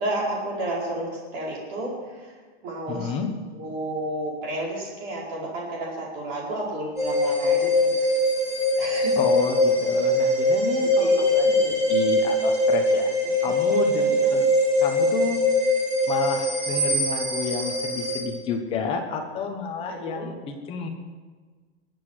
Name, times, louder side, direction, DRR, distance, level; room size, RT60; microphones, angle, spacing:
voice 1, 0.0-2.3 2.6-3.1 3.5-8.2 8.8-9.2 11.0-11.2 11.4-11.9 13.4-13.5 14.1-14.3 19.9-20.3, right 1 dB, 30° right, -4 dB, 4.7 m, -32 dB
voice 2, 2.9-3.3 9.2-13.1 13.4-14.5 14.8-15.4 16.1-20.9, left 5 dB, 15° left, 4 dB, 1.1 m, -30 dB
sound 1, 7.0-18.2, left 1 dB, 10° right, 2.1 m, -22 dB
21.0 x 8.3 x 6.4 m, 1.4 s
supercardioid pair, 180°, 32 cm